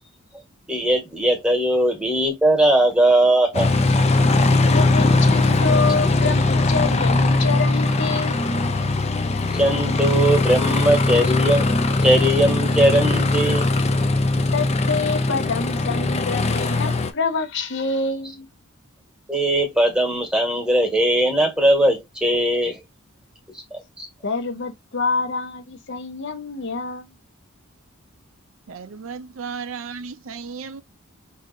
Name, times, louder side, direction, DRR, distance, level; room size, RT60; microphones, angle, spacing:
voice 1, 0.7-3.7 9.5-11.7 12.0-13.7 19.3-22.8 23.7-24.1, right 1 dB, 5° right, 1.4 m, -19 dB
Aircraft, 3.5-17.1, left 2 dB, 30° left, 0.6 m, -20 dB
voice 2, 4.7-8.5 14.5-18.5 24.2-27.1, left 4 dB, 55° left, 0.8 m, -27 dB
voice 3, 28.7-30.8, right 5 dB, 65° right, 0.5 m, -34 dB
5.0 x 2.7 x 2.6 m
head